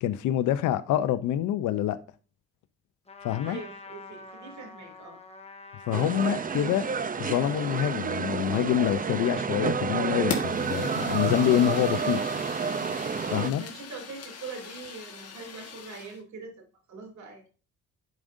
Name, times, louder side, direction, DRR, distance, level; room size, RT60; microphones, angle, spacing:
voice 1, 0.0-2.0 3.2-3.6 5.9-6.9 7.2-12.2 13.3-13.6, left 11 dB, 80° left, 0.6 m, -26 dB
Trumpet, 3.1-8.0, left 3 dB, 20° left, 1.1 m, -47 dB
voice 2, 3.4-5.2 13.4-17.5, right 4 dB, 70° right, 2.8 m, -43 dB
sound 1, 5.9-13.5, right 6 dB, 30° right, 0.6 m, -30 dB
Fire, 10.3-16.2, left 5 dB, 55° left, 1.6 m, -39 dB
11.0 x 5.1 x 2.6 m
cardioid pair, 90°, 30 cm